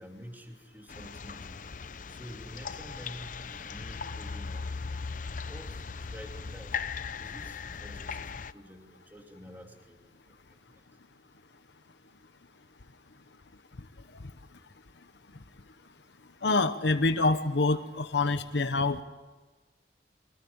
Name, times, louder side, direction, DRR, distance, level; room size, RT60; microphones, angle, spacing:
voice 1, 0.0-1.6 2.1-4.9 5.5-6.8 7.2-10.0 10.7-10.8, equal, 10° right, 3 dB, 2.8 m, -48 dB
sound 1, 0.9-8.5, left 5 dB, 50° left, 0.7 m, -38 dB
voice 2, 16.4-19.0, left 3 dB, 80° left, 10 dB, 1.0 m, -26 dB
24.5 x 20.5 x 8.9 m, 1.3 s
head